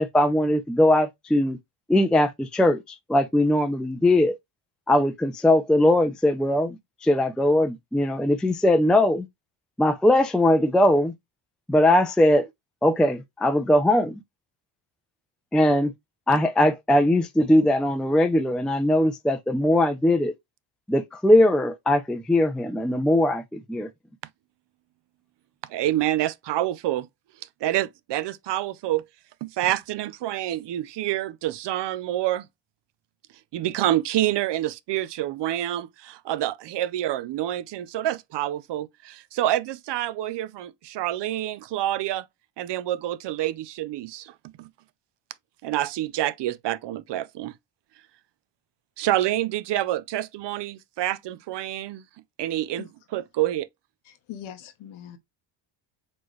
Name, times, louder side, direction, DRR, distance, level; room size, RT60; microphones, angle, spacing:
voice 1, 0.0-1.6 1.9-4.4 4.9-9.3 9.8-11.1 11.7-12.5 12.8-14.2 15.5-15.9 16.3-20.3 20.9-23.9, left 1 dB, ahead, 0.4 m, -20 dB
voice 2, 25.7-27.1 27.6-29.0 29.4-32.5 33.5-42.3 42.6-44.7 45.6-47.5 49.0-52.0 52.4-53.7, right 13 dB, 60° right, 0.6 m, -27 dB
voice 3, 54.1-55.2, left 10 dB, 80° left, 1.0 m, -41 dB
4.4 x 3.1 x 3.0 m
cardioid pair, 95°, 47 cm